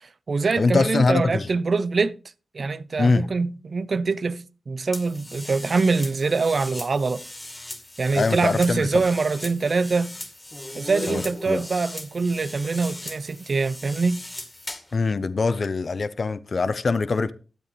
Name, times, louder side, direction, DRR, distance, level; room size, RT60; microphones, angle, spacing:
voice 1, 0.0-2.2 2.5-7.2 8.0-10.2 10.7-14.2, right 4 dB, 60° right, 0.5 m, -24 dB
voice 2, 0.6-1.5 3.0-3.3 8.1-9.0 11.1-11.6 14.9-17.3, left 4 dB, 60° left, 0.6 m, -23 dB
sound 1, 4.9-15.0, left 1 dB, 25° left, 2.2 m, -38 dB
12.5 x 8.2 x 3.1 m
cardioid pair, 40°, 0 cm